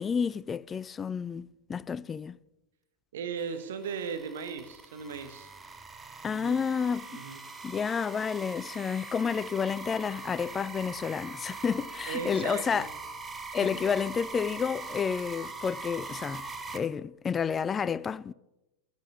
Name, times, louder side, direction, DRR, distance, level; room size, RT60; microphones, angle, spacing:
voice 1, 0.0-2.4 6.2-7.2 7.6-12.9 13.5-18.3, left 6 dB, 20° left, 0.4 m, -30 dB
voice 2, 3.1-5.5 6.3-6.6 7.1-7.4 12.1-12.9, right 6 dB, 60° right, 1.1 m, -37 dB
sound 1, 3.4-16.8, right 3 dB, 15° right, 1.0 m, -42 dB
12.0 x 10.5 x 7.2 m
figure-of-eight pair, 90°, 0 cm